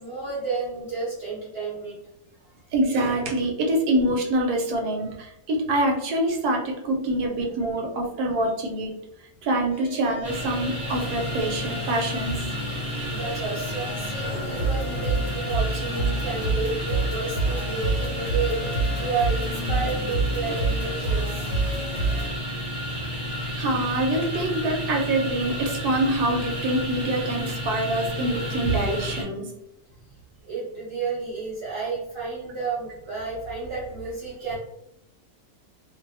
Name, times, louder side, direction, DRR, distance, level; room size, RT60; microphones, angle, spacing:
voice 1, 0.0-2.0 2.4-2.5 13.1-21.4 30.4-34.5, right 4 dB, 50° right, -7 dB, 0.8 m, -31 dB
voice 2, 2.7-8.9 9.4-12.5 23.6-29.5, right 1 dB, 75° right, 1 dB, 1.1 m, -25 dB
sound 1, 9.7-22.3, right 2 dB, 65° left, 1.0 m, -29 dB
sound 2, 10.2-29.2, equal, 30° right, 0.4 m, -31 dB
2.6 x 2.2 x 2.6 m, 0.82 s
omnidirectional pair, 1.7 m